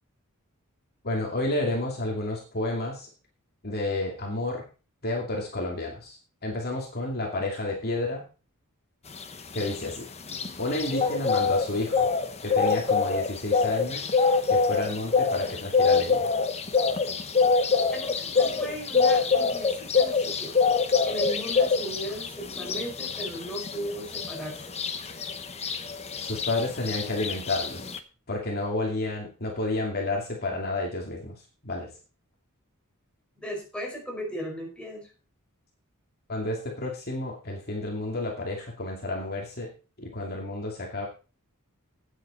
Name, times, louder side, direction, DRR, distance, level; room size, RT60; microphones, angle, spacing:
voice 1, 1.0-3.1 3.6-4.6 5.0-8.2 9.5-10.1 10.6-12.1 12.4-14.1 14.5-16.3 26.2-27.9 28.3-31.9 36.3-39.7 40.0-41.1, left 2 dB, 45° left, 0 dB, 2.6 m, -31 dB
sound 1, 9.1-28.0, left 5 dB, 30° left, 1.0 m, -25 dB
voice 2, 17.9-20.6 21.0-24.7 33.4-35.1, equal, 5° left, -2 dB, 5.2 m, -37 dB
13.0 x 9.4 x 4.3 m, 0.35 s
head